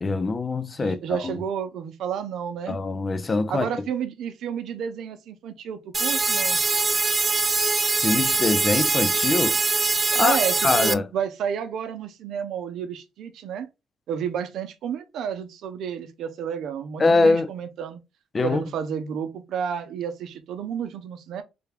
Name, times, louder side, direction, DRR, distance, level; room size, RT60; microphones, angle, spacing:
voice 1, 0.0-1.4 2.7-3.7 8.0-9.6 10.1-10.4 10.6-11.0 17.0-17.5 18.3-18.6, left 3 dB, 30° left, 0.5 m, -23 dB
voice 2, 0.8-2.8 3.5-6.6 10.1-13.7 14.1-18.0 18.4-21.4, right 8 dB, 75° right, 0.6 m, -31 dB
sound 1, 5.9-10.9, right 3 dB, 25° right, 0.4 m, -23 dB
3.4 x 2.3 x 3.3 m
cardioid pair, 90°, 0 cm